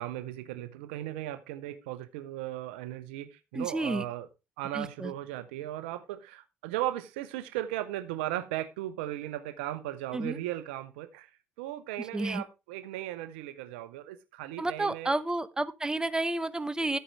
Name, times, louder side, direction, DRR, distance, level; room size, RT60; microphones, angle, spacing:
voice 1, 0.0-4.3 4.6-11.3 11.6-15.2 16.8-17.0, right 14 dB, 80° right, 0.8 m, -37 dB
voice 2, 3.5-4.0 4.7-5.1 10.1-10.4 12.1-12.4 14.6-17.0, right 2 dB, 10° right, 0.8 m, -31 dB
11.5 x 8.8 x 3.3 m
hypercardioid pair, 55°, 6 cm